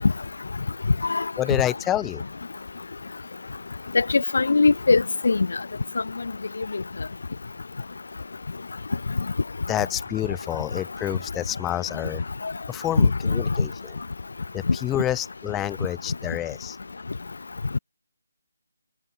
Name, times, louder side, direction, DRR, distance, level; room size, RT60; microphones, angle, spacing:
voice 1, 1.4-2.2 9.7-12.2 12.7-14.0 14.5-16.8, left 13 dB, 10° left, 3.5 m, -28 dB
voice 2, 3.9-5.5 13.0-13.1, left 4 dB, 60° left, 1.2 m, -19 dB
figure-of-eight pair, 150°, 0 cm